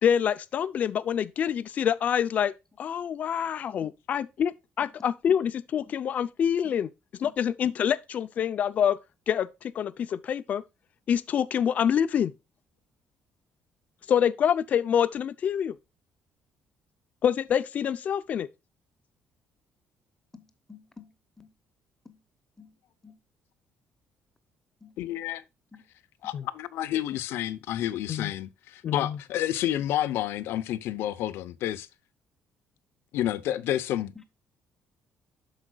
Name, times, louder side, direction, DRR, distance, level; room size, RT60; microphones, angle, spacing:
voice 1, 0.0-6.9 7.2-9.0 9.3-10.6 11.1-12.3 14.1-15.8 17.2-18.5 26.3-26.5 28.1-28.3 28.8-29.2, left 8 dB, 40° left, 0.5 m, -26 dB
voice 2, 20.3-21.1 21.4-21.5 22.0-22.2 22.6-22.7 23.0-23.2 24.8-24.9 25.7-25.8 33.3-33.4, left 5 dB, 10° left, 1.0 m, -50 dB
voice 3, 25.0-25.4 26.2-31.9 33.1-34.1, left 12 dB, 80° left, 0.7 m, -30 dB
12.5 x 5.0 x 2.3 m
cardioid pair, 175°, 4 cm